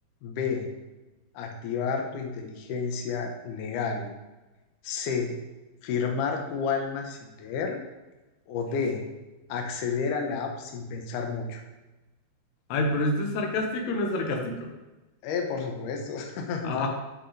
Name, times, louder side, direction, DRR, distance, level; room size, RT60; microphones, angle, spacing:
voice 1, 0.2-0.7 1.3-4.1 4.8-5.4 5.8-7.8 8.5-9.0 9.5-11.6 15.2-16.9, left 5 dB, 70° left, 2 dB, 2.2 m, -30 dB
voice 2, 12.7-14.7 16.6-16.9, left 2 dB, 85° left, 2 dB, 3.1 m, -27 dB
10.5 x 6.0 x 3.3 m, 1.1 s
omnidirectional pair, 4.6 m